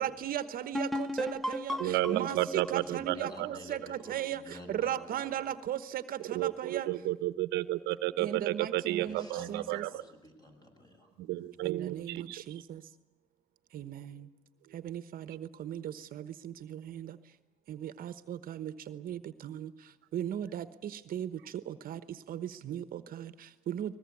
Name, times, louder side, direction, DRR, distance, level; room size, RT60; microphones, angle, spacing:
voice 1, 0.0-6.9 8.2-9.8 11.6-12.8 13.7-14.3 14.7-17.2 17.7-23.9, right 10 dB, 60° right, 13 dB, 1.1 m, -38 dB
sound 1, 0.7-4.3, equal, ahead, 0.8 m, -36 dB
voice 2, 1.8-3.1 6.3-9.9 11.2-12.4, right 16 dB, 90° right, 14 dB, 1.0 m, -32 dB
voice 3, 2.7-5.6 8.9-11.1, left 1 dB, 25° left, 4 dB, 7.3 m, -49 dB
22.5 x 20.5 x 8.5 m, 0.99 s
cardioid pair, 110°, 17 cm